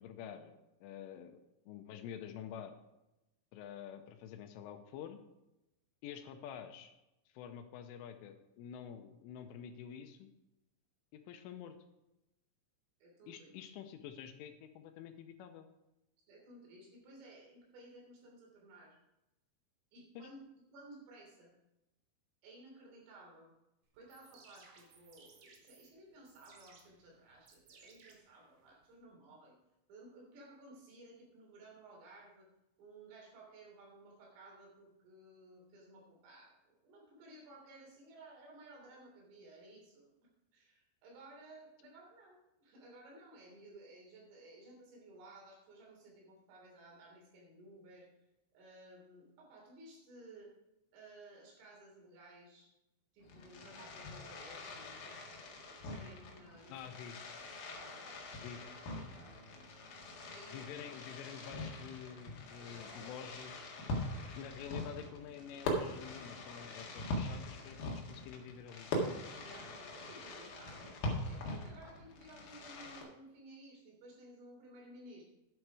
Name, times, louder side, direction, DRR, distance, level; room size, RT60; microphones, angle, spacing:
voice 1, 0.0-1.4 1.7-2.7 3.5-5.2 6.0-6.9 7.3-10.3 11.1-11.8 13.3-15.7 20.2-20.3 56.7-57.1 58.3-58.6 60.5-63.6 64.3-68.9, left 8 dB, 85° left, 7 dB, 3.2 m, -48 dB
voice 2, 13.0-13.5 16.3-19.0 19.9-20.4 20.7-21.5 22.4-23.5 23.9-29.6 29.9-32.5 32.8-40.1 40.5-48.1 48.5-50.5 50.9-52.7 53.1-55.2 55.8-56.9 57.7-58.6 59.1-59.5 60.3-60.6 62.6-63.3 63.9-64.2 69.4-71.0 71.3-75.2, right 1 dB, 80° right, -1 dB, 5.8 m, -56 dB
sound 1, 23.9-28.9, right 4 dB, 65° right, 2.1 m, -62 dB
Fireworks, 53.2-73.0, left 1 dB, 55° left, 3.0 m, -42 dB
11.0 x 8.0 x 4.7 m, 0.92 s
omnidirectional pair, 5.8 m